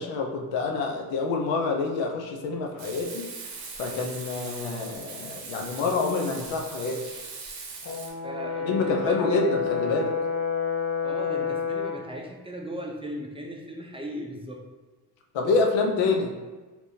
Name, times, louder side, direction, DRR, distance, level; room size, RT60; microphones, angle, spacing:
voice 1, 0.0-3.3 3.8-7.0 8.6-10.1 15.3-16.3, left 4 dB, 80° left, 2 dB, 0.6 m, -27 dB
Frying (food), 2.8-8.1, right 4 dB, 85° right, 0.8 m, -40 dB
Brass instrument, 7.9-12.1, left 6 dB, 35° left, 0.5 m, -29 dB
voice 2, 8.2-9.2 11.0-14.6, equal, 10° right, 0 dB, 0.5 m, -37 dB
3.3 x 2.9 x 2.6 m, 1.3 s
supercardioid pair, 55°, 45 cm